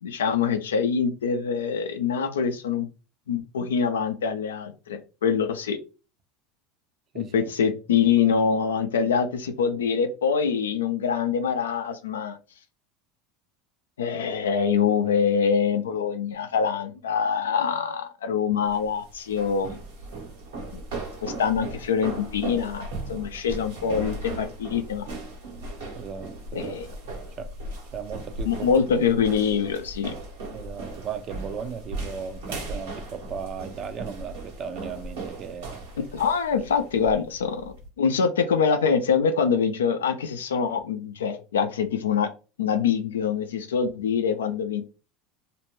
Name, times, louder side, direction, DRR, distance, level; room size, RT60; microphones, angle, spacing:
voice 1, 0.0-2.9 3.3-5.8 7.1-12.4 14.0-19.8 20.7-20.8 21.2-25.0 26.5-26.9 28.5-30.1 36.1-42.3 42.6-44.8, left 6 dB, 85° left, 0.4 m, -24 dB
voice 2, 7.1-7.5 26.0-27.0 27.4-27.5 27.9-28.7 30.5-35.8 36.5-36.7, right 7 dB, 45° right, 0.5 m, -37 dB
sound 1, 18.6-37.9, right 2 dB, 80° right, 1.1 m, -37 dB
2.5 x 2.1 x 3.0 m
hypercardioid pair, 85°, 0 cm